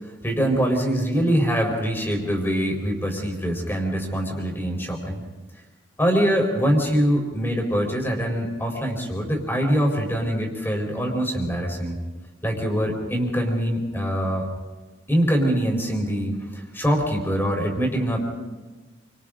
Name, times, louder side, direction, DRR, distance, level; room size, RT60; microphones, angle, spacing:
voice 1, 0.2-5.2 6.0-12.0 12.4-14.5 15.1-18.2, equal, 15° left, 1 dB, 4.2 m, -23 dB
28.5 x 25.5 x 3.9 m, 1.3 s
head